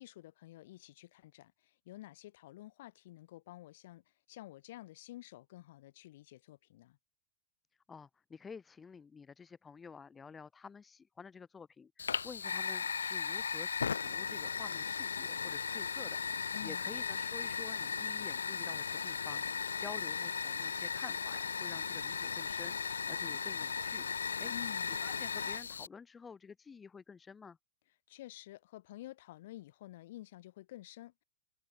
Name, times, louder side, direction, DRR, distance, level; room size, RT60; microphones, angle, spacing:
voice 1, 0.0-1.5 1.9-4.0 4.3-7.0 16.5-16.8 17.1-17.2 24.5-24.9 28.1-31.2, left 16 dB, 55° left, 3.8 m, -50 dB
voice 2, 7.9-24.5 25.0-27.6, left 5 dB, 15° left, 2.8 m, -51 dB
Fire, 12.0-25.9, left 6 dB, 70° left, 1.7 m, -36 dB
figure-of-eight pair, 90°, 0 cm